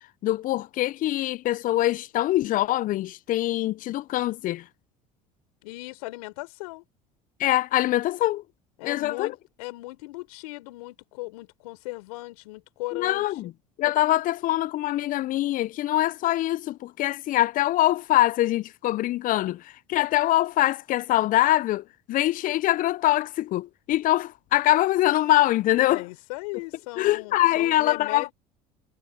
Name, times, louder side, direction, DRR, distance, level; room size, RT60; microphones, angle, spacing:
voice 1, 0.2-4.7 7.4-8.4 8.8-9.3 12.9-13.5 13.8-26.0 27.0-28.3, left 15 dB, 45° left, 0.5 m, -24 dB
voice 2, 5.6-6.8 8.8-13.5 25.9-28.3, left 24 dB, 75° left, 4.2 m, -38 dB
hypercardioid pair, 70°, 19 cm